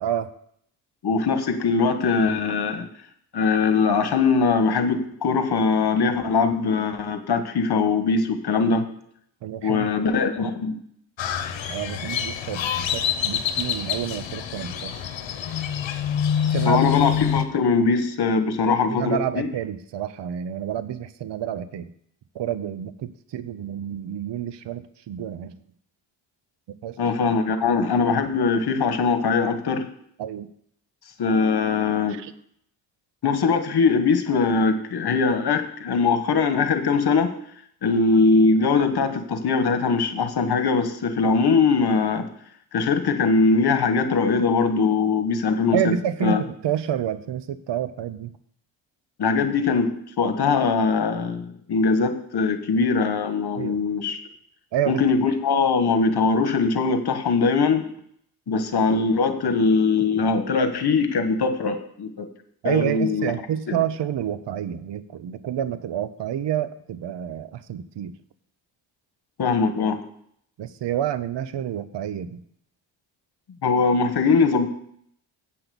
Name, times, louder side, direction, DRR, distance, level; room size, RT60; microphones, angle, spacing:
voice 1, 1.0-2.9 3.3-8.9 9.6-10.8 16.6-19.5 27.0-29.9 31.2-32.2 33.2-37.3 37.8-42.3 42.7-45.8 46.2-46.4 49.2-54.2 54.9-57.9 58.5-62.3 62.6-63.3 63.7-63.8 69.4-70.0 73.6-74.7, left 4 dB, 55° left, 8 dB, 1.4 m, -21 dB
voice 2, 9.4-9.9 11.7-14.9 16.3-16.9 18.9-21.9 22.3-25.5 26.8-27.0 30.2-30.5 32.1-32.3 45.7-48.3 53.6-53.8 54.7-55.0 62.6-68.1 70.6-72.4, right 9 dB, 65° right, 13 dB, 0.8 m, -28 dB
Crow, 11.2-17.4, left 8 dB, 75° left, 1.0 m, -26 dB
8.6 x 5.9 x 6.9 m, 0.67 s
cardioid pair, 75°, 46 cm